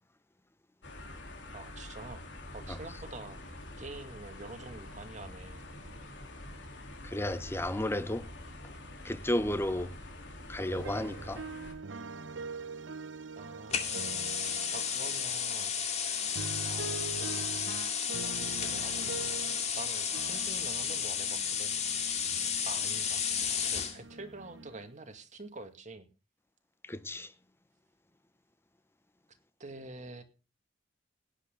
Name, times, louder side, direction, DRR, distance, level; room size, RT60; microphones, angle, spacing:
sound 1, 0.8-11.7, left 1 dB, 70° left, 3.6 m, -46 dB
voice 1, 1.5-2.3 2.5-3.4 3.8-5.6 13.4-14.3 14.7-15.8 16.6-17.5 18.1-19.4 19.7-21.8 22.7-23.2 23.6-26.1 29.6-30.2, right 2 dB, 40° right, 2.3 m, -46 dB
voice 2, 7.0-8.3 9.0-9.9 10.5-11.4 26.9-27.3, left 1 dB, 15° left, 0.8 m, -33 dB
sound 2, 10.7-15.6 16.1-19.8 20.1-24.9, right 3 dB, 80° right, 0.9 m, -44 dB
sound 3, 13.7-24.0, left 7 dB, 35° left, 2.4 m, -33 dB
17.0 x 10.5 x 3.9 m
head